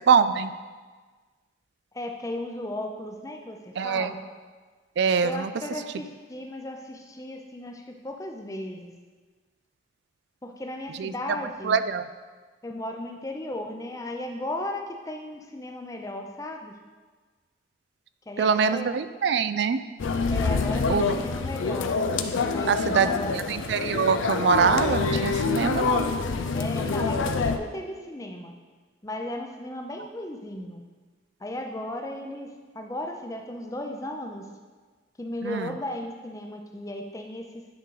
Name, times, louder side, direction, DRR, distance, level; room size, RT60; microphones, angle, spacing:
voice 1, 0.1-0.5 3.8-4.1 5.0-5.5 11.0-11.1 11.6-12.1 18.4-19.8 20.9-21.1 22.7-23.1 23.5-26.1 35.4-35.8, right 6 dB, 60° right, 13 dB, 0.3 m, -24 dB
voice 2, 1.9-4.2 5.2-8.9 10.4-11.8 12.6-16.8 18.3-18.9 20.3-22.0 22.5-22.8 23.0-23.3 26.5-28.5 29.0-30.8 31.4-34.5 35.2-37.7, left 1 dB, 15° left, 3 dB, 0.5 m, -35 dB
sound 1, 20.0-27.6, left 4 dB, 80° left, 0.5 m, -26 dB
9.3 x 3.8 x 4.8 m, 1.4 s
head